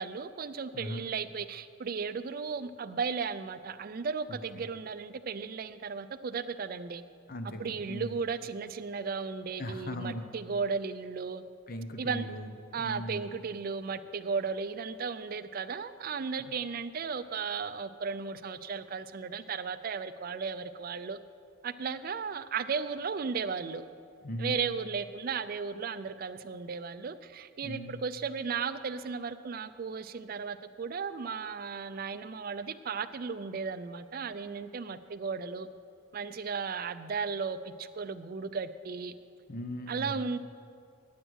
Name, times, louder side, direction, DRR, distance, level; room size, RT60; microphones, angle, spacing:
voice 1, 0.0-7.0 7.6-11.4 12.0-12.3 12.7-21.2 21.6-23.8 24.4-35.7 36.1-39.1 39.9-40.4, right 5 dB, 45° right, 12 dB, 0.4 m, -35 dB
voice 2, 4.3-4.6 7.3-8.2 9.6-10.2 11.7-12.5 12.8-13.3 16.4-16.5 24.2-24.6 27.6-27.9 39.5-40.2, left 1 dB, 45° left, 7 dB, 0.8 m, -39 dB
9.4 x 8.9 x 6.3 m, 2.4 s
head